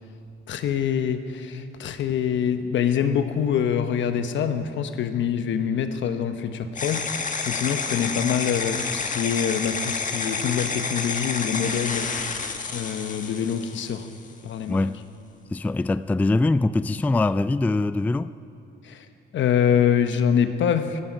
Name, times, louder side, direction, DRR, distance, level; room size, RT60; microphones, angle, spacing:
voice 1, 0.5-14.1 14.4-14.8 18.8-19.0 19.3-21.0, left 8 dB, 70° left, 1.1 m, -25 dB
sound 1, 6.8-14.3, left 5 dB, 40° left, 1.4 m, -29 dB
voice 2, 14.7-15.0 15.5-18.3, left 2 dB, 10° left, 0.3 m, -23 dB
19.0 x 14.5 x 5.3 m
cardioid pair, 90°, 20 cm